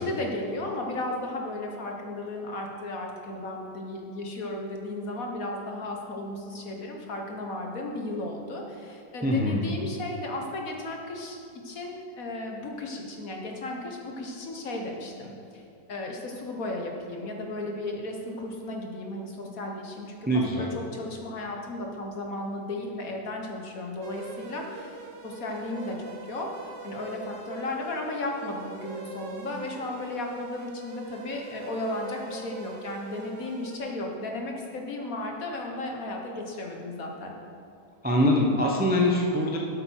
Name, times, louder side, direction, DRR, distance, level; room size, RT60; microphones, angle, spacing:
voice 1, 0.0-11.4 11.6-15.6 15.9-25.0 25.2-37.3, left 2 dB, 55° left, 1 dB, 1.5 m, -35 dB
voice 2, 9.2-9.7 20.3-20.7 38.0-39.6, left 1 dB, 10° right, -1 dB, 0.6 m, -23 dB
sound 1, 24.0-33.8, right 5 dB, 55° right, 0.9 m, -43 dB
8.3 x 8.1 x 6.3 m, 2.6 s
omnidirectional pair, 2.0 m